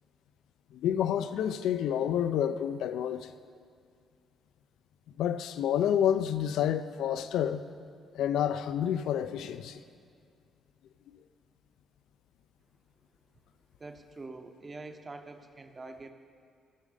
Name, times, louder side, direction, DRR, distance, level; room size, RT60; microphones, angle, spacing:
voice 1, 0.7-3.3 5.2-7.6 8.1-9.8, left 9 dB, 85° left, 0.3 m, -29 dB
voice 2, 13.8-16.1, right 3 dB, 30° right, 0.8 m, -45 dB
15.5 x 6.3 x 3.8 m
cardioid pair, 90°, 0 cm